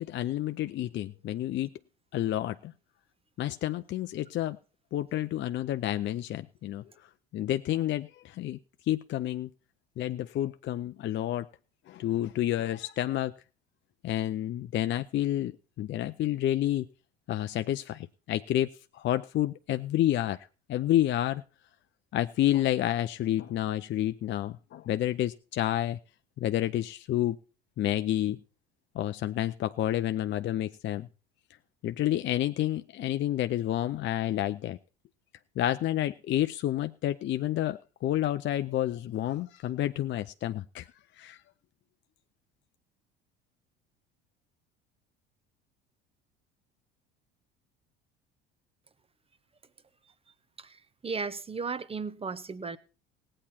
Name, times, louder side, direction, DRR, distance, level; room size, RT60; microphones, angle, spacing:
voice 1, 0.0-1.7 2.1-2.7 3.4-4.6 4.9-6.9 7.3-8.6 8.9-9.5 10.0-11.5 11.9-13.3 14.0-15.5 15.8-16.9 17.3-20.4 20.7-21.4 22.1-26.0 26.4-27.4 27.8-28.4 28.9-31.1 31.8-34.8 35.6-40.9 41.2-41.4, left 13 dB, 40° left, 0.5 m, -29 dB
voice 2, 51.0-52.8, right 4 dB, 20° right, 1.0 m, -35 dB
17.5 x 8.8 x 4.3 m
hypercardioid pair, 70°, 30 cm